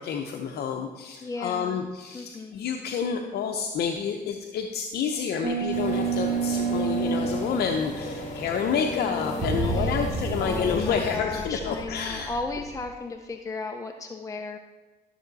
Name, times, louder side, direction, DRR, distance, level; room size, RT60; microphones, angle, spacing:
voice 1, 0.0-12.3, left 6 dB, 70° left, 3 dB, 0.8 m, -29 dB
voice 2, 1.2-1.9 2.1-2.7 8.2-8.4 8.8-14.6, left 3 dB, 20° left, 4 dB, 0.7 m, -35 dB
sound 1, 5.4-8.0 9.4-12.8, right 5 dB, 30° right, 2.0 m, -30 dB
sound 2, 5.7-11.2, left 2 dB, 45° left, 2.2 m, -36 dB
13.0 x 7.2 x 4.1 m, 1.3 s
cardioid pair, 100°, 17 cm